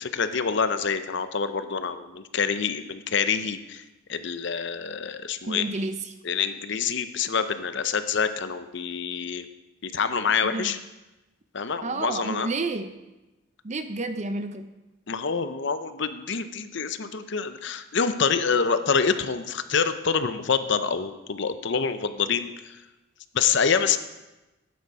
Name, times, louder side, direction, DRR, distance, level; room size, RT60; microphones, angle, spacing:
voice 1, 0.0-3.8 4.1-5.6 6.2-9.5 9.8-10.8 11.5-12.5 15.1-22.5 23.3-24.0, left 6 dB, 55° left, 10 dB, 0.6 m, -26 dB
voice 2, 5.5-6.1 10.4-10.7 11.8-12.9 13.6-14.7, right 3 dB, 35° right, 9 dB, 0.5 m, -30 dB
12.5 x 9.4 x 4.8 m, 1.0 s
head